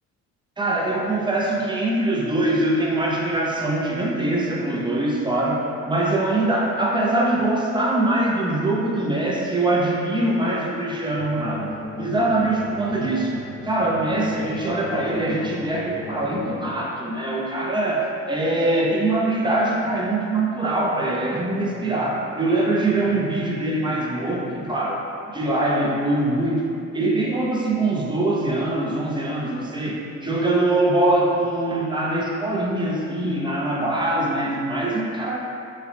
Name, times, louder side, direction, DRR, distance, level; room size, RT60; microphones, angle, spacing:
voice 1, 0.6-11.7 12.0-13.3 13.6-26.7 26.9-35.4, right 2 dB, 15° right, -3 dB, 0.6 m, -23 dB
sound 1, 11.2-16.7, left 2 dB, 30° left, 0.9 m, -35 dB
3.2 x 2.3 x 3.8 m, 2.5 s
cardioid pair, 90°, 30 cm